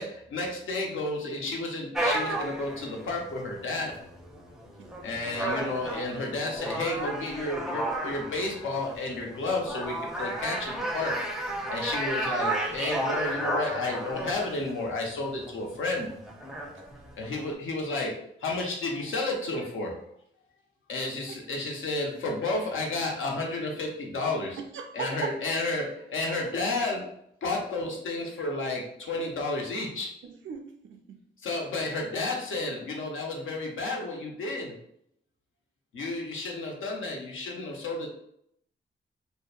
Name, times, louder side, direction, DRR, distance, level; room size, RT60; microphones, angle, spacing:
voice 1, 0.0-3.9 5.0-11.2 11.7-16.1 17.2-20.0 20.9-24.6 24.9-27.1 27.4-30.1 31.4-34.8 35.9-38.1, left 2 dB, 85° left, 0 dB, 0.6 m, -32 dB
sound 1, 1.9-17.5, right 1 dB, ahead, 0.4 m, -33 dB
voice 2, 4.8-5.3 16.7-16.9 21.3-21.6 24.6-25.4 29.1-29.3 30.2-31.2 32.1-32.2, right 6 dB, 75° right, 6 dB, 0.4 m, -40 dB
2.7 x 2.1 x 2.3 m, 0.72 s
cardioid pair, 75°, 20 cm